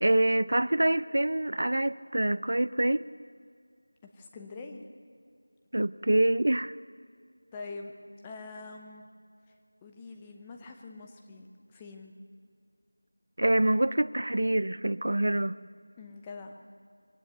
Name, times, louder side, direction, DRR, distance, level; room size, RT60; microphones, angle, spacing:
voice 1, 0.0-3.0 5.7-6.7 13.4-15.6, right 1 dB, 55° right, 17 dB, 0.5 m, -26 dB
voice 2, 4.1-4.9 7.5-7.9 8.2-9.1 9.8-12.1 16.0-16.6, left 3 dB, 10° left, 3 dB, 0.7 m, -44 dB
23.0 x 18.0 x 6.8 m, 2.2 s
figure-of-eight pair, 175°, 0 cm